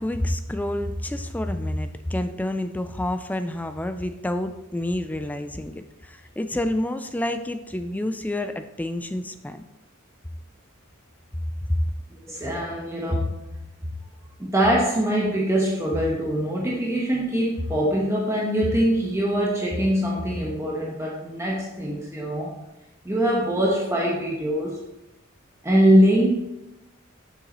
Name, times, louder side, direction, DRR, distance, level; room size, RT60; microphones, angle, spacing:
voice 1, 0.0-9.6 11.7-11.8, left 1 dB, 5° left, 8 dB, 0.3 m, -28 dB
voice 2, 12.3-13.3 14.4-22.5 23.0-24.8 25.6-26.5, equal, 15° right, -4 dB, 1.0 m, -23 dB
7.6 x 6.4 x 3.0 m, 0.94 s
head